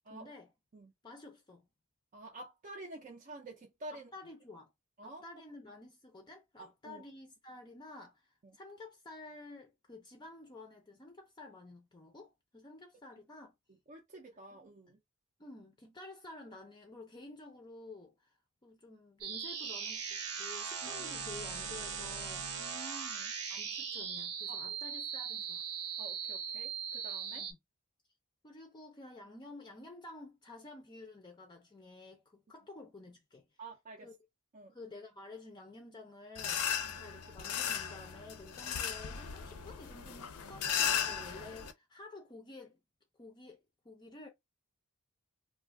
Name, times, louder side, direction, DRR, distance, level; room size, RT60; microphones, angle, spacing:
voice 1, 0.1-0.5 1.0-1.7 3.9-4.7 5.0-13.5 14.5-14.6 14.9-15.0 15.4-22.7 23.5-25.6 27.3-27.6 28.4-33.6 34.0-34.1 34.7-36.7 36.9-42.8 43.2-43.6 43.8-44.3, left 2 dB, 20° left, 0.5 m, -51 dB
voice 2, 2.1-4.1 5.0-5.2 6.6-7.0 8.4-8.6 13.9-15.0 20.8-20.9 22.6-23.3 24.5-24.6 26.0-27.5 33.6-34.1 34.5-34.7 36.8-37.0, right 2 dB, 35° right, 0.5 m, -49 dB
sound 1, 19.2-27.5, right 7 dB, 85° right, 0.9 m, -39 dB
sound 2, 36.3-41.7, left 8 dB, 90° left, 0.5 m, -36 dB
2.4 x 2.4 x 3.5 m
head